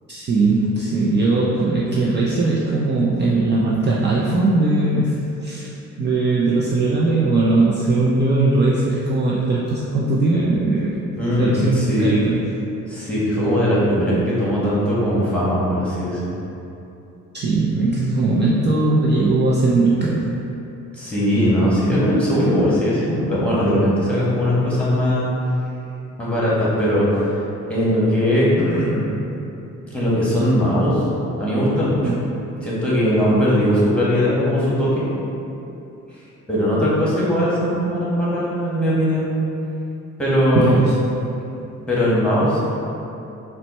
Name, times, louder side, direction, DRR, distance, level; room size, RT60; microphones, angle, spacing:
voice 1, 0.1-5.7 6.0-12.4 17.3-20.4 32.0-32.1 40.6-40.9, right 2 dB, 35° right, -5 dB, 0.5 m, -19 dB
voice 2, 11.2-12.1 12.9-16.3 20.9-25.3 26.2-27.3 27.7-29.0 29.9-31.0 31.4-32.1 32.6-35.1 36.5-39.4 40.2-40.7 41.9-42.6, equal, 5° left, -8 dB, 1.3 m, -19 dB
4.1 x 2.1 x 4.1 m, 2.8 s
cardioid pair, 90°, 30 cm